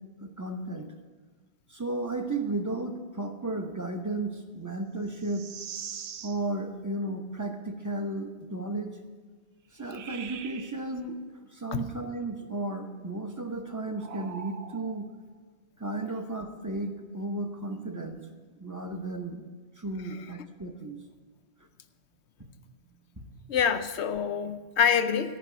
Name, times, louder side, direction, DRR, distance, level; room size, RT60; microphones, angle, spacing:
voice 1, 0.2-0.9 1.7-5.5 6.2-9.0 9.7-15.1 15.8-18.2 18.6-19.4 19.8-21.0 23.2-23.3, right 2 dB, 20° right, 4 dB, 1.0 m, -34 dB
sound 1, 5.1-6.4 9.8-10.8 13.9-15.1 17.6-18.1, right 7 dB, 75° right, 0.9 m, -42 dB
voice 2, 23.5-25.4, left 7 dB, 85° left, 10 dB, 1.0 m, -26 dB
13.5 x 5.8 x 9.4 m, 1.4 s
omnidirectional pair, 1.1 m